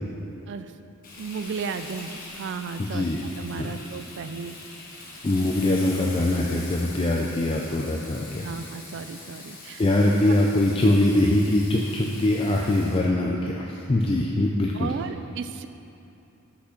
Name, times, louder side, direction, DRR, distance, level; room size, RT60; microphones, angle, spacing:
Frying (food), 1.0-13.0, left 3 dB, 40° left, 1.2 m, -43 dB
voice 1, 1.2-3.1 3.4-4.6 8.4-9.8 14.7-15.7, right 5 dB, 50° right, 10 dB, 0.3 m, -34 dB
voice 2, 2.8-3.2 3.6-3.7 5.2-8.5 9.8-14.9, left 1 dB, 25° left, -1 dB, 0.4 m, -23 dB
6.1 x 6.1 x 5.8 m, 2.8 s
head